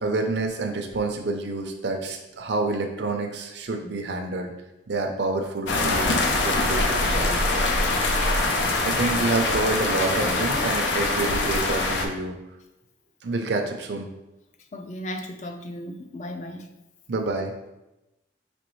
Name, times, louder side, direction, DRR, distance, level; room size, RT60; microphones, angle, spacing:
voice 1, 0.0-4.5 4.9-6.1 6.4-7.6 8.8-12.4 13.2-14.1 17.1-17.5, right 3 dB, 70° right, 3 dB, 0.6 m, -28 dB
sound 1, 5.7-12.1, left 2 dB, 85° left, 0.6 m, -23 dB
voice 2, 14.7-16.7, left 1 dB, 40° left, 6 dB, 0.4 m, -35 dB
5.1 x 2.9 x 3.1 m, 0.95 s
head